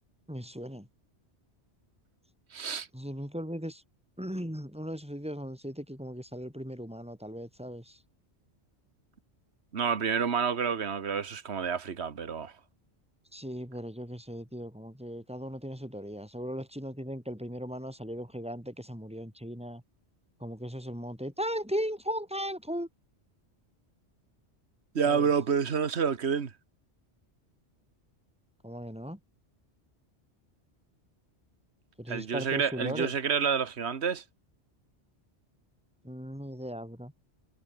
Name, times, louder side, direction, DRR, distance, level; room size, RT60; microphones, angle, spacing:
voice 1, 0.3-0.9 2.9-3.8 4.2-8.0 13.3-19.8 20.4-22.9 25.0-25.3 28.6-29.2 32.0-33.1 36.0-37.1, equal, 5° right, 7.4 m, -37 dB
voice 2, 2.5-2.9 9.7-12.5 24.9-26.5 32.1-34.2, right 6 dB, 70° right, 1.7 m, -29 dB
omnidirectional pair, 1.2 m